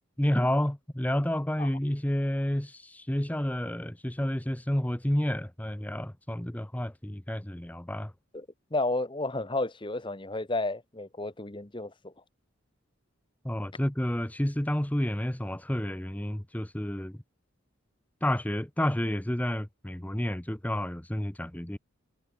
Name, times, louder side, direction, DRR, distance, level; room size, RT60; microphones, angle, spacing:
voice 1, 0.2-8.1 13.4-17.2 18.2-21.8, left 1 dB, 5° left, 0.7 m, -30 dB
voice 2, 8.3-12.1, left 2 dB, 25° left, 1.2 m, -32 dB
head